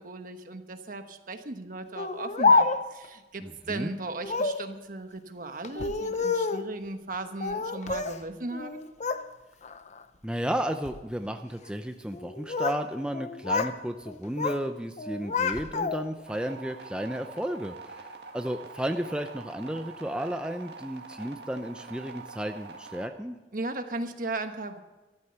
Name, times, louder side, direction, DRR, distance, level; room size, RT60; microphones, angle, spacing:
voice 1, 0.0-8.8 23.5-24.8, right 2 dB, 50° right, 7 dB, 1.2 m, -37 dB
Speech, 2.0-3.1 4.2-4.7 5.6-6.7 7.4-8.2 8.5-9.2 9.6-10.0 10.7-11.0 12.1-12.8 13.1-13.8 14.1-14.6 15.0-16.2, left 4 dB, 40° left, 0.7 m, -28 dB
voice 2, 3.4-3.9 10.2-23.4, equal, 5° right, 6 dB, 0.5 m, -33 dB
sound 1, 16.3-23.1, right 4 dB, 70° right, 1.7 m, -45 dB
14.0 x 12.0 x 6.8 m, 1.1 s
head